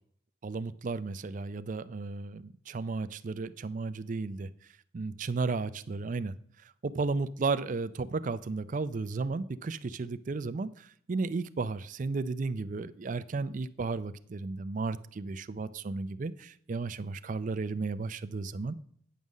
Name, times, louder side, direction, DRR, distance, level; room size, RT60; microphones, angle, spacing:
voice 1, 0.4-4.5 4.9-6.3 6.8-18.7, right 3 dB, 40° right, 14 dB, 0.4 m, -34 dB
9.3 x 5.5 x 6.3 m, 0.62 s
head